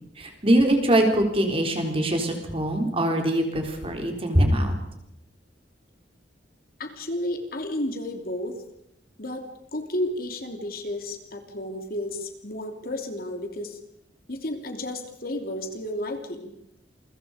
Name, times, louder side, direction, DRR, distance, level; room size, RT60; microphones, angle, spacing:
voice 1, 0.2-4.7, right 1 dB, 30° right, 3 dB, 3.9 m, -22 dB
voice 2, 6.8-8.6 9.2-9.4 9.7-13.8 14.3-16.5, left 1 dB, 50° left, 5 dB, 3.0 m, -32 dB
28.0 x 23.0 x 5.1 m, 0.81 s
head